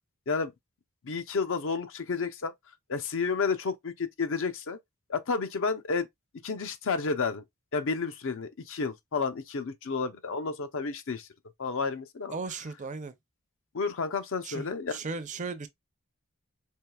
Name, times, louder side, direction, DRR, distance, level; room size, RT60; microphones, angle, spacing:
voice 1, 1.0-2.5 2.9-4.8 5.1-6.1 6.4-7.4 7.7-11.3 11.6-12.4 13.7-15.0, left 4 dB, 65° left, 0.6 m, -31 dB
voice 2, 12.3-13.1 14.4-15.7, right 4 dB, 35° right, 0.5 m, -36 dB
4.5 x 3.2 x 2.2 m
head